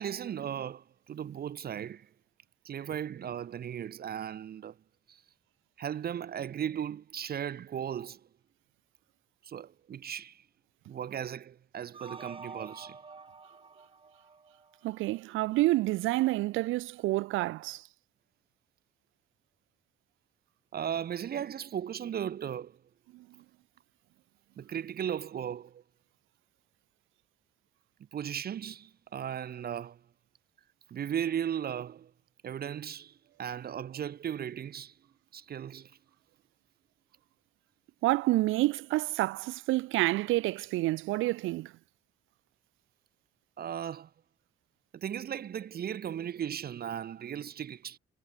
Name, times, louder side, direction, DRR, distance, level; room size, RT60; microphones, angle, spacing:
voice 1, 0.0-2.1 2.6-4.8 5.1-5.2 5.8-8.3 9.4-10.4 10.9-13.0 20.7-22.8 24.6-25.8 28.1-30.0 30.9-32.1 32.4-34.9 35.3-36.0 43.6-44.1 44.9-48.0, right 9 dB, 50° right, 0.8 m, -36 dB
sound 1, 11.9-15.1, right 4 dB, 25° right, 1.8 m, -48 dB
voice 2, 14.8-17.9 23.1-23.3 38.0-41.7, right 18 dB, 85° right, 0.5 m, -28 dB
cardioid pair, 90°, 20 cm